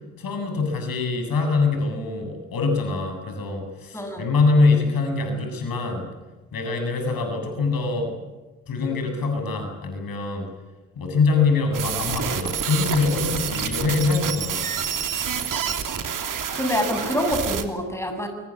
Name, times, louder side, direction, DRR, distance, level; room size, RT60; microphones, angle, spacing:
voice 1, 0.2-6.1 6.5-8.2 8.7-10.5 11.0-14.7, left 3 dB, 50° left, 5 dB, 8.0 m, -24 dB
voice 2, 3.9-4.3 16.5-18.3, equal, 5° left, 5 dB, 7.8 m, -26 dB
sound 1, 11.7-17.6, right 7 dB, 45° right, 3.2 m, -28 dB
25.0 x 24.0 x 8.8 m, 1.2 s
figure-of-eight pair, 45°, 43 cm